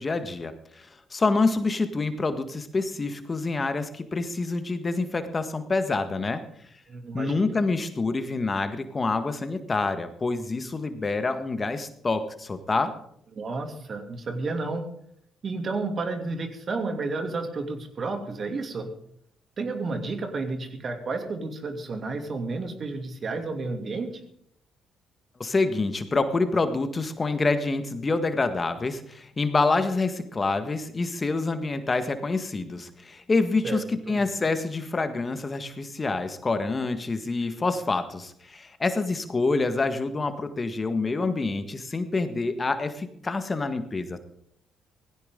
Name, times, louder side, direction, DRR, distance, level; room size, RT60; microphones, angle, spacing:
voice 1, 0.0-6.4 7.1-12.9 25.4-44.2, left 3 dB, 35° left, 9 dB, 1.7 m, -27 dB
voice 2, 6.9-7.6 13.3-14.8 15.4-18.9 19.6-24.1 33.6-34.2, right 3 dB, 50° right, 5 dB, 2.8 m, -31 dB
17.5 x 15.5 x 3.8 m, 0.68 s
hypercardioid pair, 50°, 0 cm